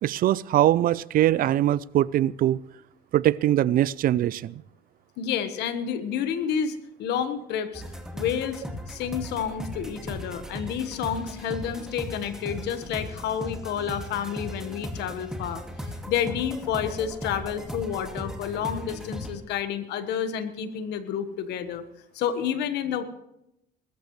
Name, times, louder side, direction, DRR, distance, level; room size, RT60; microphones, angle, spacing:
voice 1, 0.0-2.6 3.1-4.6, right 13 dB, 60° right, 21 dB, 0.4 m, -22 dB
voice 2, 5.2-7.8 8.1-21.8 22.1-23.0, left 8 dB, 80° left, 10 dB, 1.3 m, -30 dB
sound 1, 7.7-19.4, equal, 5° right, 2.2 m, -37 dB
20.5 x 13.5 x 3.2 m, 0.84 s
cardioid pair, 110°, 17 cm